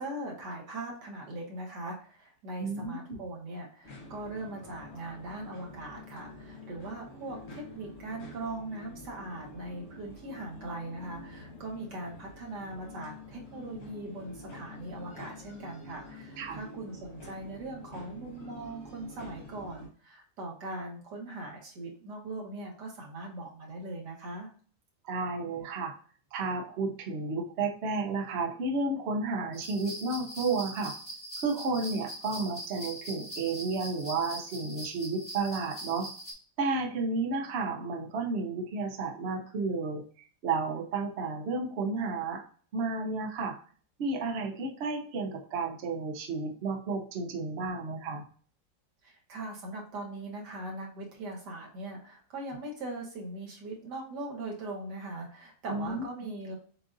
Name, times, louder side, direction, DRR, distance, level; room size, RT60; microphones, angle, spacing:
voice 1, 0.0-24.5 49.0-56.5, right 2 dB, 80° right, -2 dB, 1.8 m, -40 dB
voice 2, 2.6-3.2 16.4-16.6 25.0-25.9 26.3-31.0 31.4-36.1 36.6-40.1 40.4-42.4 42.7-43.6 44.0-48.2 55.7-56.0, right 3 dB, 60° right, 3 dB, 0.7 m, -32 dB
sound 1, 3.8-19.9, left 2 dB, 45° left, 1.1 m, -47 dB
sound 2, 29.5-36.3, equal, 10° left, 1.0 m, -42 dB
7.4 x 2.5 x 2.5 m, 0.44 s
omnidirectional pair, 1.8 m